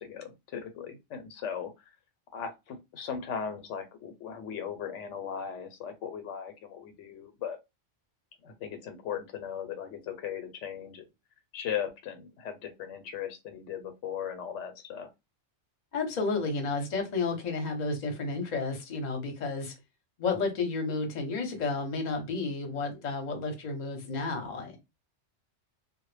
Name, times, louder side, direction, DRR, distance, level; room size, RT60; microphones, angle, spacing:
voice 1, 0.0-1.7 2.3-7.6 8.4-11.0 11.5-15.1, left 8 dB, 85° left, 0.9 m, -38 dB
voice 2, 15.9-19.7 20.2-24.8, left 3 dB, 45° left, 0.7 m, -31 dB
2.1 x 2.0 x 3.1 m
omnidirectional pair, 1.2 m